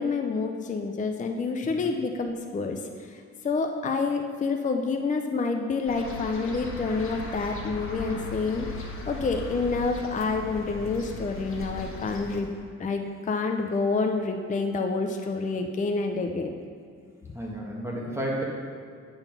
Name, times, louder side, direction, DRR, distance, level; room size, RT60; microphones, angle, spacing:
voice 1, 0.0-2.8 3.4-8.7 9.1-12.5 12.8-16.6, left 4 dB, 25° left, 4 dB, 0.6 m, -28 dB
sound 1, 5.9-12.4, left 2 dB, 45° left, 1.3 m, -38 dB
voice 2, 17.3-18.4, right 1 dB, 10° right, -4 dB, 1.5 m, -32 dB
8.5 x 3.9 x 5.9 m, 2.2 s
cardioid pair, 90°, 30 cm